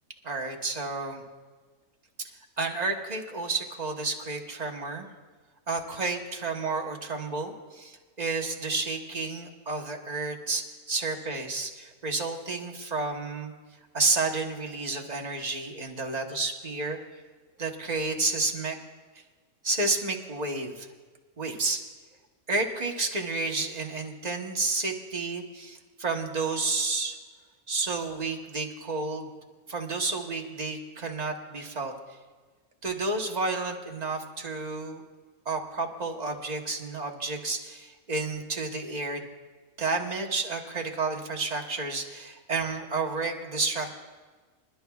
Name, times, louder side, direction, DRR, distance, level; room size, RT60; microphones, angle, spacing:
voice 1, 0.2-1.2 2.6-5.1 5.7-13.5 13.9-17.0 17.6-18.8 19.6-20.9 21.4-21.8 22.5-27.2 27.7-29.3 29.7-31.9 32.8-35.0 35.4-39.2 39.8-43.9, right 3 dB, 30° right, 2 dB, 1.1 m, -31 dB
26.5 x 11.5 x 2.3 m, 1.4 s
omnidirectional pair, 1.5 m